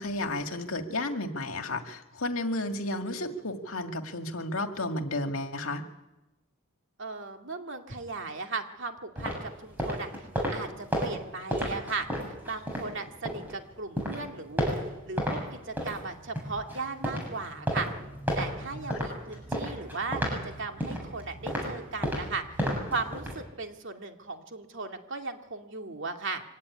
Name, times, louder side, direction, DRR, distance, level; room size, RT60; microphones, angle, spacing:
voice 1, 0.0-5.8 18.9-19.0, left 2 dB, 70° left, 6 dB, 2.1 m, -32 dB
voice 2, 7.0-14.7 15.1-17.9 18.4-26.4, right 4 dB, 55° right, 4 dB, 2.5 m, -37 dB
sound 1, 9.2-13.6 13.9-15.4 15.7-23.4, equal, 10° right, 7.7 m, -33 dB
24.5 x 17.5 x 9.8 m, 0.96 s
head